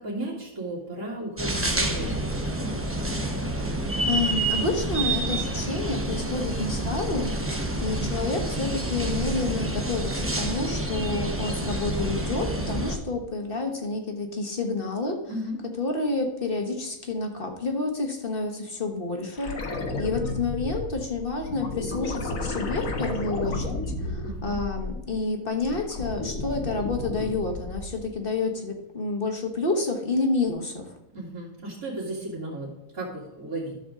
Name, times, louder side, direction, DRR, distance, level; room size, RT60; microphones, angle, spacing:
voice 1, 0.0-2.3 15.3-15.6 24.2-24.6 31.1-33.7, right 1 dB, 70° right, -7 dB, 2.7 m, -34 dB
sound 1, 1.4-13.0, right 1 dB, 10° right, 0.8 m, -28 dB
voice 2, 4.1-15.2 15.8-19.6 20.0-23.7 24.0-30.9, left 3 dB, 40° left, 4 dB, 1.4 m, -29 dB
sound 2, 19.3-25.1 25.5-28.0 30.5-30.6, left 2 dB, 70° left, 1.6 m, -32 dB
12.5 x 6.9 x 3.7 m, 0.94 s
omnidirectional pair, 1.5 m